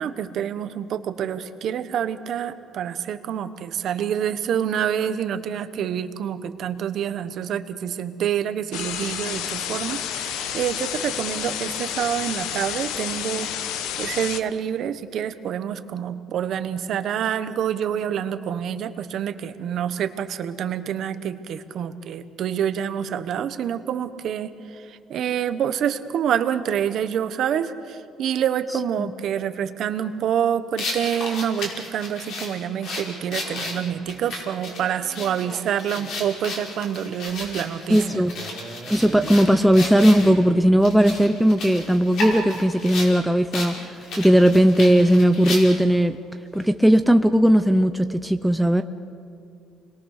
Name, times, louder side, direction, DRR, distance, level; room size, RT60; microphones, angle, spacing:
voice 1, 0.0-38.0, right 9 dB, 50° right, 10 dB, 1.1 m, -27 dB
sound 1, 8.7-14.4, left 9 dB, 80° left, 1.1 m, -30 dB
sound 2, 30.8-40.3 40.8-43.1 43.5-43.7 44.0-45.9, left 2 dB, 55° left, 5.5 m, -33 dB
Male speech man speaking, 33.4-36.4 38.0-40.9, right 4 dB, 20° right, 1.5 m, -41 dB
voice 2, 37.9-38.3 38.9-43.8 44.2-46.2 46.5-48.8, equal, ahead, 7 dB, 0.6 m, -17 dB
30.0 x 21.5 x 6.6 m, 2.4 s
cardioid pair, 170°, 0 cm